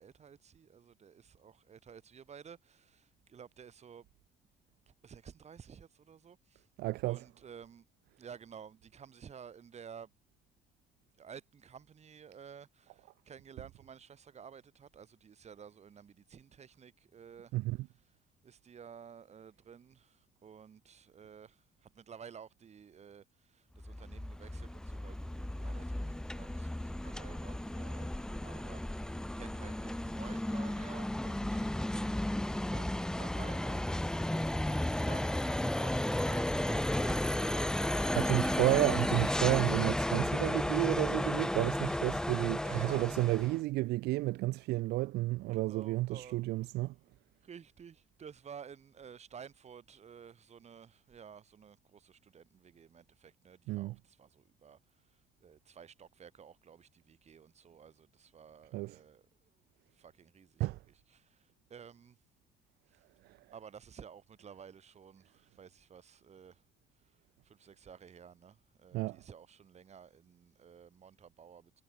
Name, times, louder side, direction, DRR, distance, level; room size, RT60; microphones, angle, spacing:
voice 1, 0.0-4.1 5.0-6.6 7.0-7.9 8.2-10.1 11.2-17.5 18.4-33.8 34.6-39.2 42.6-43.1 45.5-46.4 47.4-54.8 55.4-59.2 60.0-60.7 61.1-61.4 61.7-62.2 63.5-66.6 67.4-71.8, right 7 dB, 40° right, 5.4 m, -53 dB
voice 2, 6.8-7.2 17.5-17.8 38.2-46.9 53.7-53.9 58.7-59.0 60.6-60.8 68.9-69.2, right 19 dB, 75° right, 0.5 m, -31 dB
sound 1, 23.8-43.6, left 1 dB, 5° left, 0.6 m, -34 dB
cardioid pair, 110°, 17 cm